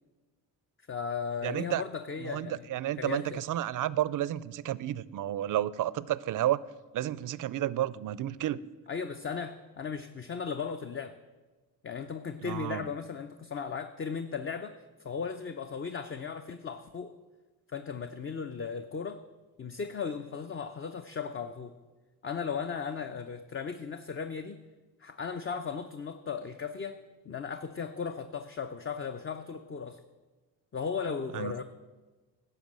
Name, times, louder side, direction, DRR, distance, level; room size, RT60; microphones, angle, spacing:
voice 1, 0.9-2.7 3.0-3.4 8.9-11.2 11.8-14.8 15.0-17.1 17.7-19.2 19.6-21.8 22.2-24.6 25.0-27.0 27.2-30.0 30.7-31.6, left 6 dB, 30° left, 8 dB, 0.6 m, -36 dB
voice 2, 1.4-1.8 2.2-6.6 6.9-8.6 12.4-12.9 31.3-31.6, right 12 dB, 50° right, 19 dB, 0.5 m, -31 dB
11.5 x 5.5 x 7.5 m, 1.3 s
supercardioid pair, 60°, 41 cm